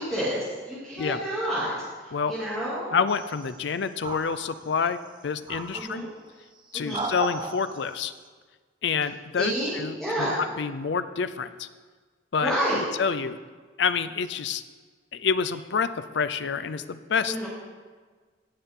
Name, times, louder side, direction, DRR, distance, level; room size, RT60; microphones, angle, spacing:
voice 1, 0.0-1.7 2.3-2.9 5.7-6.0 6.7-7.1 9.4-10.4 12.4-12.8 17.3-17.5, equal, ahead, -11 dB, 2.4 m, -29 dB
voice 2, 2.1-2.5 2.9-5.0 5.2-6.1 6.7-8.1 8.8-11.7 12.3-13.4 13.8-14.6 15.1-17.5, left 6 dB, 70° left, 12 dB, 0.5 m, -28 dB
sound 1, 3.1-3.6 4.0-4.9 5.5-6.1 6.7-7.9, right 3 dB, 25° right, 0.6 m, -36 dB
16.5 x 5.8 x 3.7 m, 1.5 s
head